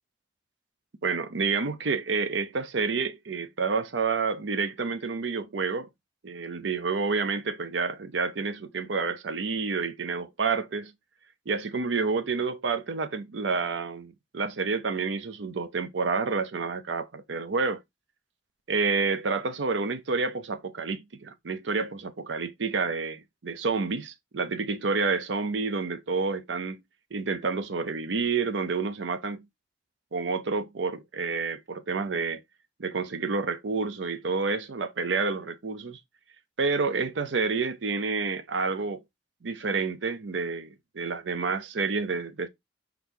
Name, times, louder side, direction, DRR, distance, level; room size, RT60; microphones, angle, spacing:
voice 1, 1.0-5.9 6.2-10.9 11.5-17.8 18.7-26.8 27.1-29.4 30.1-32.4 32.8-36.0 36.6-39.0 39.4-42.5, right 4 dB, 85° right, 0.6 m, -29 dB
4.6 x 4.0 x 2.7 m
head